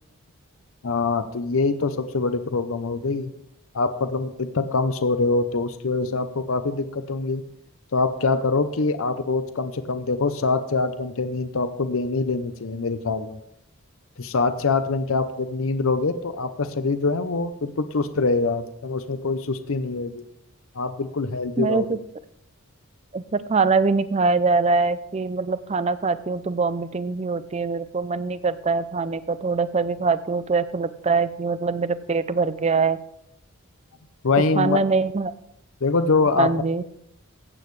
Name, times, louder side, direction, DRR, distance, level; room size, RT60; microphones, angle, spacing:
voice 1, 0.8-3.3 3.7-7.4 7.9-13.4 14.2-20.2 20.7-21.9 34.2-34.8 35.8-36.5, left 3 dB, 65° left, 11 dB, 0.6 m, -24 dB
voice 2, 21.6-22.0 23.1-33.0 34.6-35.3 36.4-36.8, right 4 dB, 30° right, 14 dB, 0.4 m, -23 dB
15.0 x 8.8 x 3.2 m, 0.74 s
head